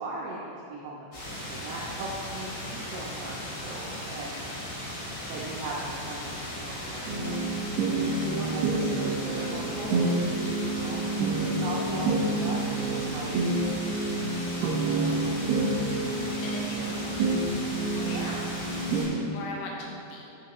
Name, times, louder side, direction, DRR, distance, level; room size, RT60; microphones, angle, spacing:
voice 1, 0.0-4.4 5.3-13.4 14.5-15.7 18.0-18.4, right 2 dB, 90° right, -4 dB, 2.3 m, -39 dB
sound 1, 1.1-19.1, equal, 60° left, 2.6 m, -37 dB
sound 2, 7.1-19.0, right 2 dB, 75° right, 2.4 m, -28 dB
voice 2, 15.9-17.2 17.9-18.4 19.3-20.3, left 3 dB, 80° left, -2 dB, 2.3 m, -40 dB
7.4 x 5.5 x 2.9 m, 2.9 s
omnidirectional pair, 5.4 m